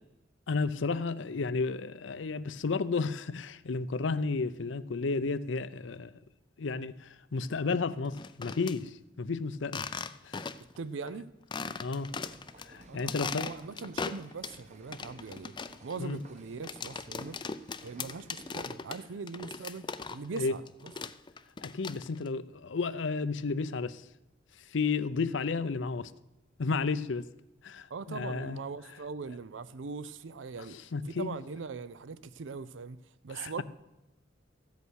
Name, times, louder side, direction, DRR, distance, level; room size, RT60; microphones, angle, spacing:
voice 1, 0.5-6.1 6.6-9.8 10.2-10.5 11.8-12.1 12.7-13.5 16.0-16.2 20.3-20.5 21.6-24.0 24.7-26.1 26.6-27.3 27.6-28.6 30.7-31.4 33.3-33.6, left 4 dB, 70° left, 0.6 m, -32 dB
sound 1, 8.1-8.8 9.6-10.8 11.1-11.2 11.5-12.7 13.0-14.6 14.9-20.4 20.7-22.3, left 5 dB, 25° left, 0.4 m, -39 dB
voice 2, 10.8-11.3 12.9-15.5 15.8-17.4 17.8-20.9 27.9-33.0 33.2-33.6, right 4 dB, 80° right, 0.5 m, -41 dB
sound 2, 11.7-18.7, right 1 dB, 40° right, 1.3 m, -55 dB
14.0 x 8.3 x 6.3 m
head